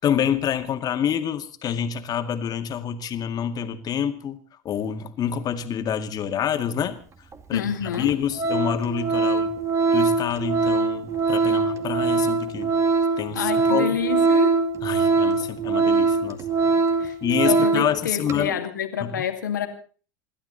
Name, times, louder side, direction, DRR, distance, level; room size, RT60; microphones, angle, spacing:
voice 1, 0.0-4.4 4.6-7.0 7.5-9.6 9.9-12.7 13.2-14.0 14.8-16.4 17.2-18.6 19.0-19.1, left 8 dB, 40° left, 7 dB, 2.1 m, -27 dB
Organ, 7.3-7.4 7.9-8.1 8.4-17.9 18.3-18.4, right 4 dB, 30° right, 2.2 m, -22 dB
voice 2, 7.5-8.2 13.3-14.6 17.0-17.2 17.4-19.7, left 9 dB, 85° left, 6 dB, 2.2 m, -27 dB
28.0 x 12.5 x 4.1 m, 0.40 s
hypercardioid pair, 80°, 10 cm